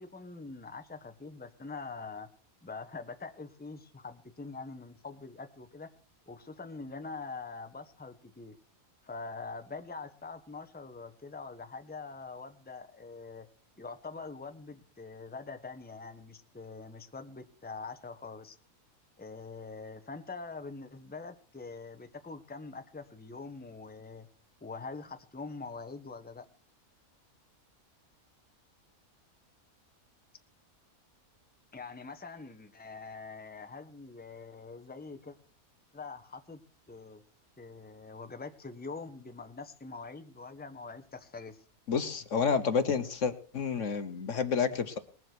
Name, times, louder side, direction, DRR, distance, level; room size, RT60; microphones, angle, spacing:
voice 1, 0.0-2.3 2.6-5.9 6.3-8.6 9.0-13.5 13.8-18.6 19.2-24.3 24.6-26.4 31.7-35.4 35.9-36.6 36.9-37.2 37.6-41.6, left 4 dB, 5° left, 8 dB, 1.1 m, -44 dB
voice 2, 41.9-45.0, left 6 dB, 60° left, 11 dB, 1.4 m, -29 dB
20.0 x 7.8 x 6.1 m, 0.40 s
omnidirectional pair, 1.5 m